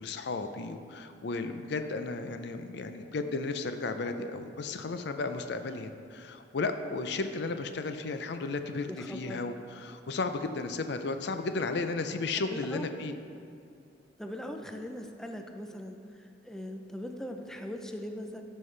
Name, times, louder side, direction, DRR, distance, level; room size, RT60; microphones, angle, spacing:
voice 1, 0.0-13.1, left 3 dB, 70° left, 8 dB, 0.5 m, -34 dB
voice 2, 8.9-9.4 12.5-12.8 14.2-18.4, equal, 5° left, 4 dB, 0.4 m, -40 dB
13.0 x 5.5 x 3.3 m, 2.5 s
head